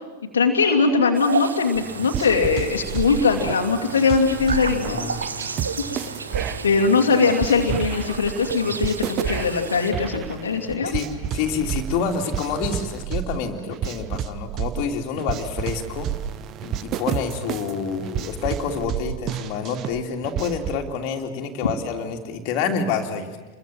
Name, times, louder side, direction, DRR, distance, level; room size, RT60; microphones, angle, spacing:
voice 1, 0.3-5.1 6.6-10.9, left 4 dB, 70° left, 2 dB, 2.5 m, -21 dB
sound 1, 1.1-9.9, right 4 dB, 75° right, 1.3 m, -32 dB
sound 2, 1.7-20.8, right 9 dB, 35° right, 1.1 m, -31 dB
voice 2, 4.9-5.2 6.3-6.4 10.8-11.1 11.3-16.1 16.6-23.3, left 6 dB, 45° left, 2 dB, 3.1 m, -28 dB
29.0 x 23.0 x 7.7 m, 1.2 s
figure-of-eight pair, 90°, 0 cm